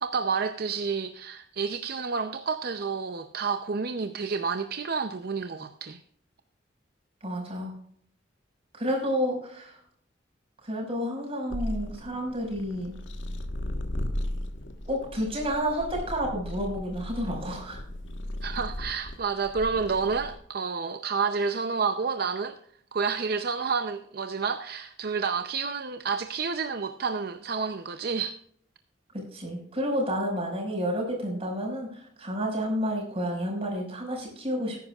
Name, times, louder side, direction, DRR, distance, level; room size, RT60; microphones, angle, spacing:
voice 1, 0.0-6.0 18.4-22.6 22.9-28.4, right 5 dB, 55° right, 0.6 m, -29 dB
voice 2, 7.2-7.7 8.7-9.8 10.6-12.9 14.9-17.8 29.1-34.8, equal, 30° right, 5.3 m, -30 dB
sound 1, 11.5-20.4, left 1 dB, 85° left, 1.4 m, -36 dB
19.0 x 10.5 x 2.4 m
head